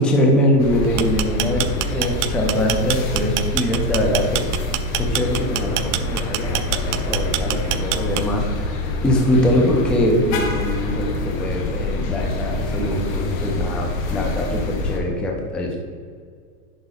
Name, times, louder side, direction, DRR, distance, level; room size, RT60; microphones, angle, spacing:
voice 1, 0.0-15.8, left 1 dB, ahead, 0 dB, 0.4 m, -22 dB
sound 1, 0.6-15.0, left 2 dB, 65° left, 1.3 m, -26 dB
sound 2, 0.8-8.5, right 14 dB, 55° right, 0.5 m, -25 dB
11.0 x 3.9 x 3.9 m, 2.1 s
supercardioid pair, 135°, 44 cm